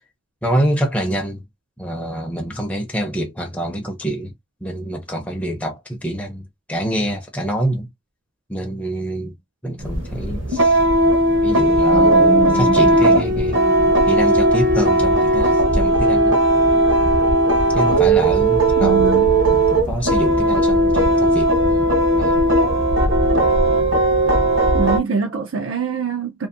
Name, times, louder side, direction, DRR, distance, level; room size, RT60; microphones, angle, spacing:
voice 1, 0.4-1.4 1.8-4.3 4.6-7.9 8.5-9.3 9.6-10.8 11.4-12.2 12.5-13.6 14.1-16.4 17.7-19.2 19.5-21.9 22.1-22.4, right 1 dB, 5° left, 0.5 m, -26 dB
sound 1, 9.8-25.0, right 1 dB, 65° right, 0.9 m, -16 dB
sound 2, 11.9-14.7, equal, 60° left, 0.7 m, -26 dB
voice 2, 18.8-19.3 24.7-26.5, right 5 dB, 85° right, 0.6 m, -23 dB
2.7 x 2.5 x 2.5 m
head